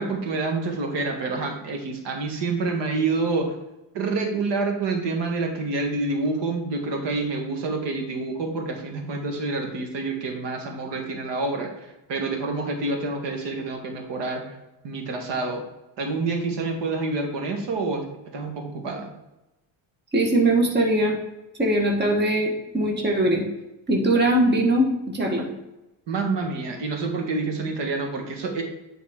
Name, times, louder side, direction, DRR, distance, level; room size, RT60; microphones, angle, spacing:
voice 1, 0.0-3.5 3.9-14.5 14.8-15.6 16.0-19.1 26.1-28.6, right 3 dB, 60° right, 3 dB, 1.5 m, -27 dB
voice 2, 20.1-21.1 21.6-23.4 23.9-25.5, right 1 dB, 20° right, 0 dB, 1.3 m, -21 dB
9.4 x 4.1 x 3.6 m, 0.97 s
cardioid pair, 120°, 47 cm